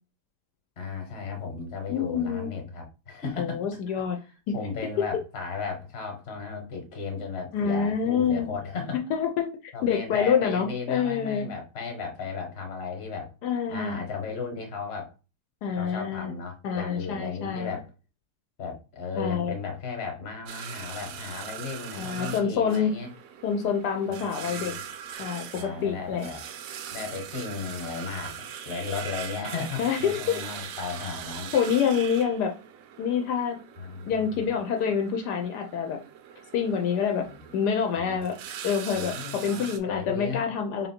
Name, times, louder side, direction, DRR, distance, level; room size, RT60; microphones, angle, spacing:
voice 1, 0.8-3.6 4.5-9.0 9.7-13.3 13.7-15.1 15.8-17.9 18.6-23.1 24.1-24.8 25.5-26.4 26.9-28.4 28.6-31.5 33.8-34.5 37.3-37.4 38.0-38.2 38.9-40.4, left 5 dB, 40° left, 1.2 m, -35 dB
voice 2, 1.9-2.5 3.4-4.2 4.5-4.6 7.5-8.5 9.1-11.5 13.4-14.0 15.6-16.3 16.6-17.8 19.2-19.6 22.0-22.9 23.4-24.7 25.2-26.3 29.8-30.2 31.5-32.5 33.0-33.6 34.1-36.0 36.5-37.3 37.5-40.9, left 7 dB, 75° left, 1.2 m, -27 dB
sound 1, 20.5-39.8, right 8 dB, 70° right, 0.9 m, -41 dB
3.7 x 2.7 x 4.2 m
omnidirectional pair, 1.8 m